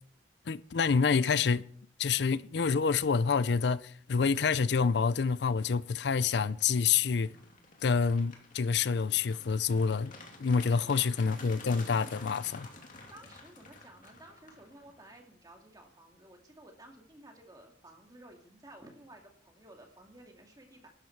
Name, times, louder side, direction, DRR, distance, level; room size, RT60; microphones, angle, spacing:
voice 1, 0.5-1.6 2.0-7.3 7.8-10.1 10.4-12.7, left 5 dB, 60° left, 0.4 m, -27 dB
sound 1, 5.4-15.2, left 2 dB, 45° left, 2.8 m, -51 dB
voice 2, 10.7-11.3 13.1-20.9, right 1 dB, 20° right, 2.3 m, -54 dB
15.5 x 12.5 x 4.6 m
head